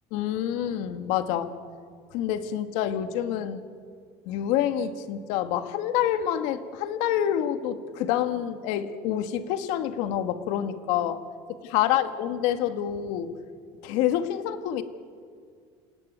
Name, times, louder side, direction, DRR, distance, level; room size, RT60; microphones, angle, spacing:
voice 1, 0.1-1.5 2.1-3.6 4.3-11.2 11.6-13.3 13.8-14.8, left 10 dB, 70° left, 9 dB, 1.8 m, -27 dB
28.5 x 17.5 x 9.5 m, 2.1 s
cardioid pair, 145°, 12 cm